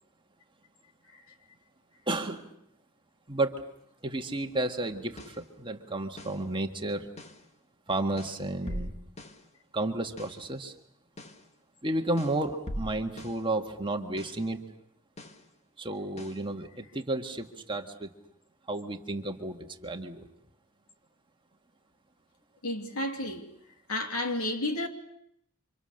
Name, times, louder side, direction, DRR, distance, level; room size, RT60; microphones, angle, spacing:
voice 1, 2.1-2.6 3.3-3.6 4.0-7.1 7.9-8.9 9.7-10.7 11.8-14.6 15.8-18.1 18.7-20.3, right 2 dB, 25° right, 1.7 m, -32 dB
sound 1, 5.2-5.5 6.2-6.5 7.2-7.5 8.2-9.5 10.2-10.5 11.2-11.5 12.2-13.5 14.2-14.5 15.2-15.5 16.2-16.5, equal, 30° left, 1.5 m, -41 dB
voice 2, 22.6-23.5 23.9-24.9, left 1 dB, 85° left, 2.8 m, -31 dB
30.0 x 26.0 x 6.6 m
head